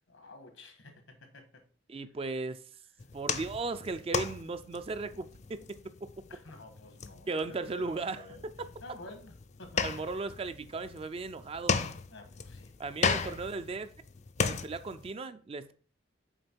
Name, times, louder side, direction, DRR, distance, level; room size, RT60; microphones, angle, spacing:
voice 1, 0.1-1.6 6.3-8.5 8.8-10.1 12.1-13.4, left 2 dB, 80° left, 1.4 m, -52 dB
voice 2, 1.9-2.6 3.1-6.1 7.3-8.3 8.6-8.7 9.8-11.8 12.8-13.9 14.4-15.7, right 3 dB, 30° right, 0.3 m, -36 dB
sound 1, 3.0-15.1, left 5 dB, 35° left, 0.4 m, -36 dB
6.4 x 4.4 x 4.5 m
head